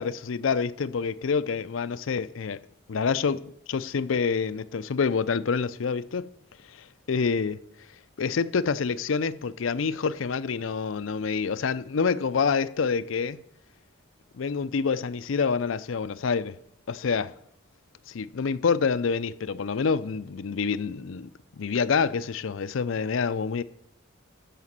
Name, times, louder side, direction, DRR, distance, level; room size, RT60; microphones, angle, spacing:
voice 1, 0.0-2.6 2.9-3.4 3.7-6.3 7.1-7.6 8.2-13.4 14.3-16.6 16.9-17.3 18.1-23.6, left 5 dB, 85° left, 0.5 m, -27 dB
12.5 x 5.0 x 7.3 m
head